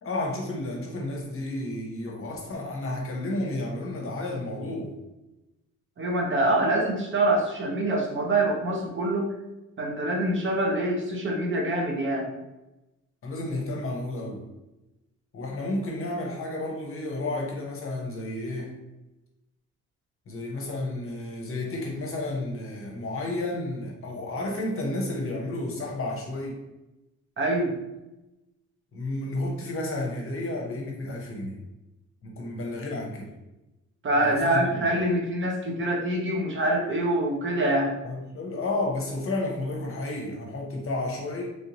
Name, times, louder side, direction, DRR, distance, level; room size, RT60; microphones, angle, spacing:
voice 1, 0.0-4.9 13.2-14.4 15.3-18.7 20.3-26.6 28.9-31.6 32.2-33.3 34.1-34.8 38.0-41.6, left 2 dB, 45° left, 0 dB, 0.9 m, -31 dB
voice 2, 6.0-9.3 9.8-12.3 27.4-27.7 34.0-37.9, right 1 dB, 40° right, 0 dB, 0.8 m, -25 dB
3.2 x 2.6 x 2.9 m, 0.99 s
cardioid pair, 90°, 30 cm